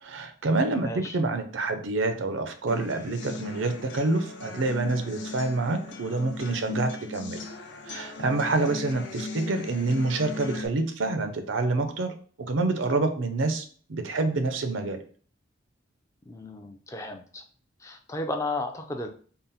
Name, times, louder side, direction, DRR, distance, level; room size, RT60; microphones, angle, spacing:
voice 1, 0.0-7.4 7.9-12.1 12.5-15.0, right 2 dB, 85° right, 8 dB, 0.6 m, -27 dB
voice 2, 0.8-1.2 16.3-17.4 17.8-19.1, left 2 dB, 15° left, 5 dB, 0.4 m, -34 dB
sound 1, 2.7-10.7, left 3 dB, 70° left, 0.6 m, -38 dB
3.7 x 2.0 x 4.1 m, 0.44 s
head